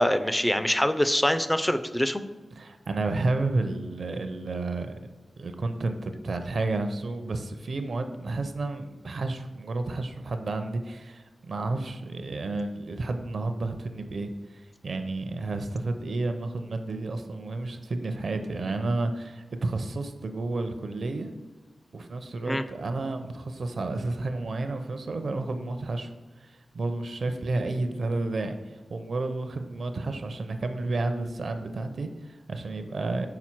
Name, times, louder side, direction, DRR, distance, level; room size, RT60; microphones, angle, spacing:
voice 1, 0.0-2.2 22.5-22.6, equal, 10° left, 10 dB, 0.3 m, -24 dB
voice 2, 2.5-4.9 5.4-21.3 21.9-26.1 26.4-33.3, right 2 dB, 55° right, 7 dB, 0.6 m, -31 dB
5.9 x 4.4 x 4.5 m, 1.3 s
wide cardioid pair, 140°, 0 cm